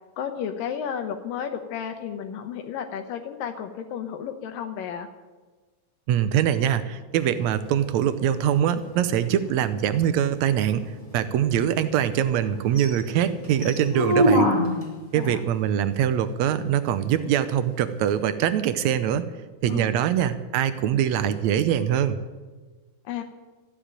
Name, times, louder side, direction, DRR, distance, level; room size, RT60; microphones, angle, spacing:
voice 1, 0.2-5.1 15.1-15.4 19.7-19.9 23.1-23.2, left 8 dB, 80° left, 6 dB, 2.5 m, -32 dB
voice 2, 6.1-10.8 11.1-14.5 15.1-19.2 19.6-22.2, right 10 dB, 80° right, 12 dB, 1.6 m, -23 dB
sound 1, 7.1-15.1 18.1-18.2, equal, 15° left, 1.3 m, -28 dB
14.5 x 9.9 x 8.9 m, 1.3 s
omnidirectional pair, 4.0 m